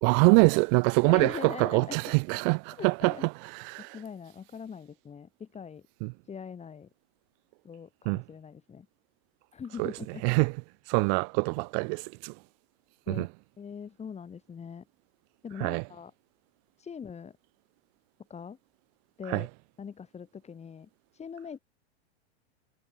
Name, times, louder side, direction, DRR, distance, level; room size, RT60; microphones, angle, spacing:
voice 1, 0.0-4.0 6.0-6.1 8.1-8.2 9.8-9.9 10.2-10.5 10.9-12.4 13.1-13.3 15.6-15.8 19.3-19.5, right 40 dB or more, 40° right, 0.6 m, -25 dB
voice 2, 1.1-2.0 2.8-3.3 3.8-5.9 6.3-6.9 7.6-8.9 9.5-10.2 13.1-13.3 13.6-14.9 15.4-16.1 16.8-17.4 18.3-18.6 19.2-19.5 19.8-20.9 21.2-21.6, left 6 dB, 20° left, 5.6 m, -41 dB
hypercardioid pair, 115°, 34 cm